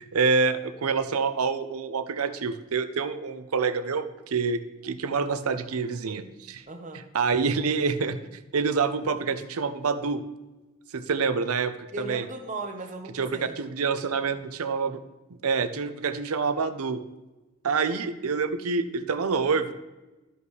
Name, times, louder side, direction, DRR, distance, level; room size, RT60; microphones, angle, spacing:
voice 1, 0.0-6.6 7.1-8.2 8.5-10.2 10.9-12.2 13.1-13.3 13.6-15.0 15.3-17.0 17.6-19.7, right 5 dB, 85° right, 11 dB, 0.6 m, -27 dB
voice 2, 6.7-7.0 11.9-13.5 17.8-18.1, right 2 dB, 35° right, 5 dB, 0.9 m, -37 dB
12.5 x 5.3 x 3.2 m, 1.1 s
head